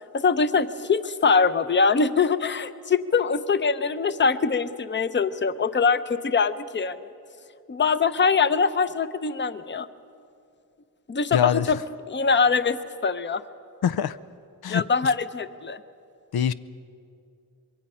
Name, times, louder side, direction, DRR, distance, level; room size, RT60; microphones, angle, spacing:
voice 1, 0.1-7.1 7.7-9.9 11.1-11.8 12.1-12.8 13.0-13.4 14.7-15.8, left 5 dB, 30° left, 13 dB, 0.7 m, -23 dB
voice 2, 11.3-11.7 13.8-14.2 14.6-14.8 16.3-16.5, left 9 dB, 80° left, 14 dB, 0.6 m, -23 dB
25.5 x 22.0 x 5.5 m, 2.4 s
wide cardioid pair, 125°, 36 cm